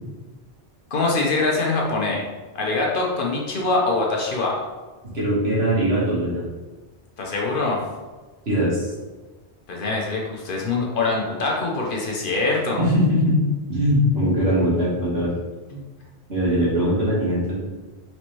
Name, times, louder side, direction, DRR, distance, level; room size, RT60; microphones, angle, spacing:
voice 1, 0.9-2.3 2.5-4.6 7.2-7.8 9.7-12.9 15.7-15.8, left 3 dB, 55° left, -2 dB, 0.9 m, -23 dB
voice 2, 5.1-6.4 8.5-8.9 12.8-13.4 13.7-15.3 16.3-17.6, equal, 70° right, -7 dB, 1.8 m, -21 dB
4.3 x 3.2 x 3.0 m, 1.3 s
omnidirectional pair, 1.1 m